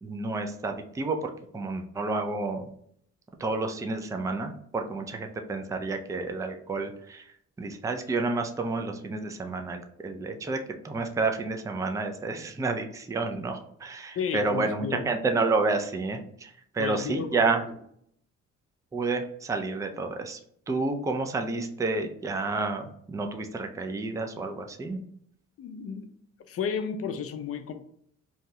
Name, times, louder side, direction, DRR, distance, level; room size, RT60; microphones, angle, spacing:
voice 1, 0.0-2.7 3.4-10.6 10.8-17.6 18.9-20.4 20.7-25.0, right 3 dB, 10° right, 0.4 m, -30 dB
voice 2, 14.1-15.1 16.8-17.5 25.6-26.1 26.5-27.7, left 6 dB, 50° left, 0.5 m, -33 dB
2.7 x 2.3 x 2.9 m
cardioid pair, 90°, 30 cm